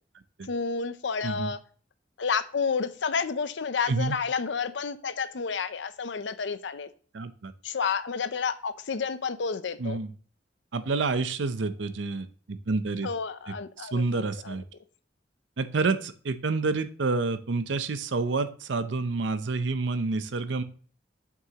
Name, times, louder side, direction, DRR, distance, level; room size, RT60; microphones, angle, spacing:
voice 1, 0.5-1.6 2.2-6.9 7.6-10.0 13.0-14.6, left 5 dB, 70° left, 13 dB, 0.6 m, -30 dB
voice 2, 7.1-7.5 9.8-10.1 10.7-13.1 13.8-14.6 15.6-20.6, right 3 dB, 75° right, 11 dB, 0.6 m, -28 dB
7.5 x 6.0 x 2.9 m, 0.44 s
head